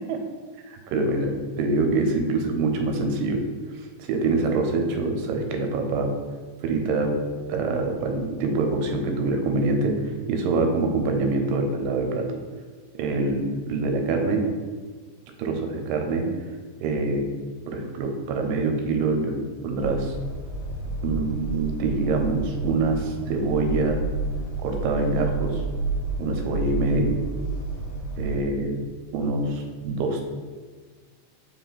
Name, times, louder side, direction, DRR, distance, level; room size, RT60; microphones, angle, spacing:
voice 1, 0.7-3.4 4.0-6.1 6.6-7.1 7.5-12.4 13.0-14.4 15.4-16.3 16.8-17.3 17.7-20.2 21.0-24.0 24.6-25.6 26.2-27.1 28.2-28.8 29.1-30.2, right 3 dB, 80° right, 4 dB, 2.3 m, -25 dB
sound 1, 19.8-28.4, right 3 dB, 60° left, 2.7 m, -30 dB
5.4 x 2.5 x 3.9 m, 1.5 s
omnidirectional pair, 3.9 m